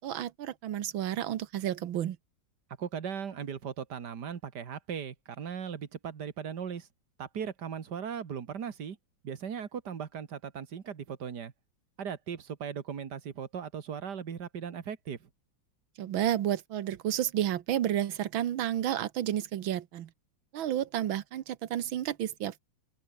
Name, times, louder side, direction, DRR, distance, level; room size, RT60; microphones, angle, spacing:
voice 1, 0.0-2.2 16.0-20.1 20.5-22.6, right 11 dB, 85° right, 1.8 m, -31 dB
voice 2, 2.8-6.9 7.2-9.0 9.2-11.5 12.0-15.2, right 7 dB, 60° right, 2.2 m, -38 dB
open air
omnidirectional pair, 2.1 m